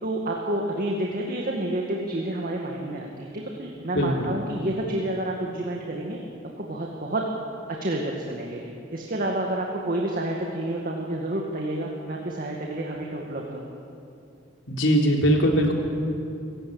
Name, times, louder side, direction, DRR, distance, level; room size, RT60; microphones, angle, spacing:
voice 1, 0.0-3.3 3.6-6.2 6.6-7.2 7.8-8.6 8.9-13.6, right 1 dB, 50° right, 0 dB, 2.1 m, -29 dB
voice 2, 3.9-4.3 14.7-15.7, equal, 85° left, 1 dB, 3.6 m, -21 dB
25.0 x 16.0 x 8.9 m, 2.7 s
head